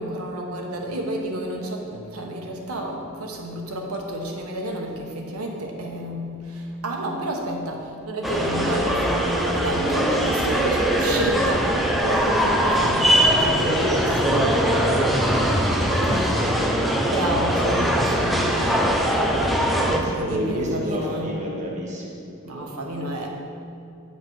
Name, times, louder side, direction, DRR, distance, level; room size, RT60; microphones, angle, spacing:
voice 1, 0.0-11.7 12.0-14.5 15.9-16.5 17.0-18.7 19.8-21.3 22.4-23.3, right 1 dB, 90° right, 0 dB, 1.2 m, -30 dB
sound 1, 8.2-20.0, equal, ahead, 0.5 m, -21 dB
voice 2, 13.4-16.8 18.6-19.0 19.4-22.1 22.4-22.7 22.9-23.1, equal, 35° right, -2 dB, 1.0 m, -30 dB
9.0 x 5.8 x 4.7 m, 2.5 s
head